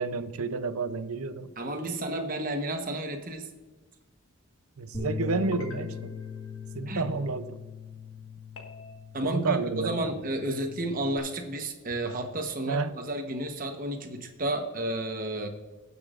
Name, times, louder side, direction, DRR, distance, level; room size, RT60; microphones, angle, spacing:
voice 1, 0.0-1.5 4.8-6.2 6.7-7.6 9.2-10.1 12.7-13.0, right 4 dB, 80° right, 12 dB, 0.6 m, -30 dB
voice 2, 1.6-3.5 6.9-7.0 9.1-15.5, right 1 dB, 40° right, 5 dB, 1.1 m, -32 dB
Bass guitar, 4.9-11.2, left 5 dB, 35° left, 1.5 m, -40 dB
sound 1, 5.2-7.4 8.6-8.9, left 2 dB, 65° left, 1.6 m, -47 dB
18.5 x 6.9 x 2.5 m, 1.2 s
head